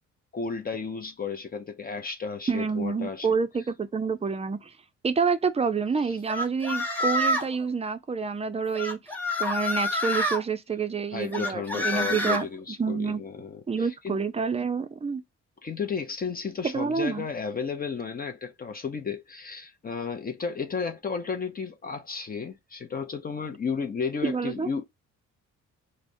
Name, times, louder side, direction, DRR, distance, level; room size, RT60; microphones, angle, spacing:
voice 1, 0.3-3.3 11.1-14.2 15.6-24.8, left 5 dB, 30° left, 0.6 m, -33 dB
voice 2, 2.5-4.7 5.0-9.0 9.4-12.5 12.8-13.2 13.7-15.2 16.6-17.3 24.2-24.7, right 5 dB, 20° right, 0.5 m, -28 dB
sound 1, 6.3-7.6 8.8-10.4 11.3-12.4, left 1 dB, 5° left, 1.0 m, -27 dB
4.8 x 2.1 x 2.6 m
cardioid pair, 90°, 30 cm